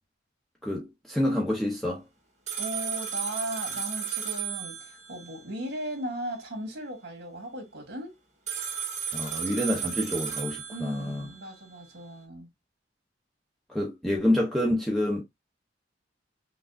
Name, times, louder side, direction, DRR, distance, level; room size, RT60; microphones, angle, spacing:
voice 1, 0.6-2.0 9.1-11.3 13.7-15.2, left 1 dB, ahead, 0.7 m, -27 dB
sound 1, 2.5-5.4 8.5-11.3, right 8 dB, 40° right, 2.0 m, -34 dB
voice 2, 2.6-8.2 10.7-12.5, right 1 dB, 60° right, 1.8 m, -37 dB
5.8 x 2.3 x 2.4 m
head